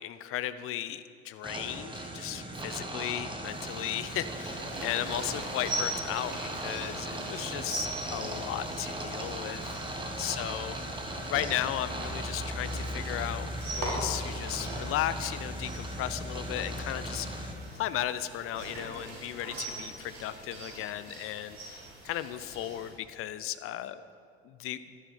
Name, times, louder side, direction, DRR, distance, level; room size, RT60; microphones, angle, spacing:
voice 1, 0.0-10.8 11.3-17.5 17.8-21.8 22.0-24.0 24.4-24.8, left 12 dB, 45° left, 13 dB, 0.7 m, -35 dB
sound 1, 1.4-17.5, right 1 dB, 15° right, 1.8 m, -37 dB
sound 2, 3.5-22.9, right 2 dB, 70° right, 3.2 m, -42 dB
14.5 x 11.5 x 4.5 m, 2.2 s
figure-of-eight pair, 60°, 32 cm